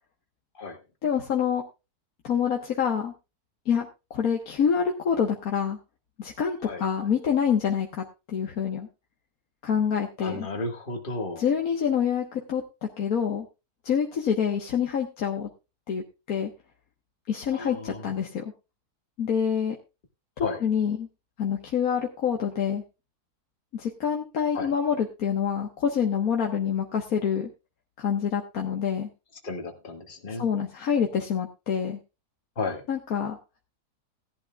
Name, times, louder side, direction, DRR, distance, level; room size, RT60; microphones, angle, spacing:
voice 1, 1.0-1.6 2.2-3.1 3.7-5.8 6.2-8.9 9.6-10.5 11.4-12.6 13.0-13.5 13.8-15.5 15.9-16.5 17.3-18.5 19.2-19.8 20.4-21.1 21.4-22.8 23.7-27.5 28.0-29.1 30.3-32.0 32.9-33.4, left 7 dB, 65° left, 1 dB, 1.7 m, -26 dB
voice 2, 10.2-11.4 17.5-18.0 20.4-20.6 24.5-24.7 29.4-30.4 32.6-32.8, left 3 dB, 35° left, 4 dB, 2.0 m, -33 dB
17.5 x 11.0 x 2.3 m, 0.27 s
omnidirectional pair, 1.6 m